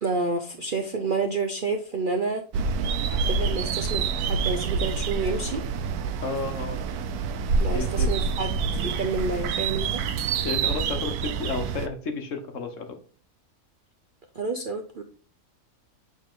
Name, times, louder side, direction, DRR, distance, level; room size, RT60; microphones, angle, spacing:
voice 1, 0.0-2.4 3.3-5.6 7.6-8.5 8.8-10.0 14.3-15.0, right 3 dB, 55° right, 4 dB, 0.6 m, -29 dB
sound 1, 2.5-11.9, right 5 dB, 85° right, 1.1 m, -27 dB
voice 2, 6.2-6.8 7.7-8.1 10.4-13.0, left 4 dB, 60° left, 6 dB, 1.3 m, -32 dB
7.1 x 4.2 x 3.7 m, 0.40 s
omnidirectional pair, 1.6 m